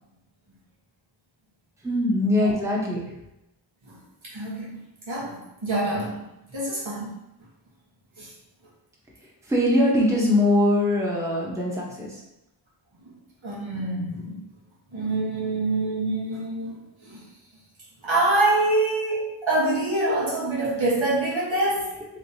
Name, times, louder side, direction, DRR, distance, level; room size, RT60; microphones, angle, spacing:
voice 1, 1.8-3.2 9.4-12.2, left 1 dB, 5° right, -4 dB, 0.8 m, -22 dB
voice 2, 4.3-4.8 5.1-6.1 6.5-7.1 8.2-8.3 13.4-14.4 14.9-17.2 18.0-21.9, right 2 dB, 85° right, -7 dB, 1.3 m, -25 dB
3.8 x 3.2 x 2.7 m, 0.89 s
wide cardioid pair, 45°, 46 cm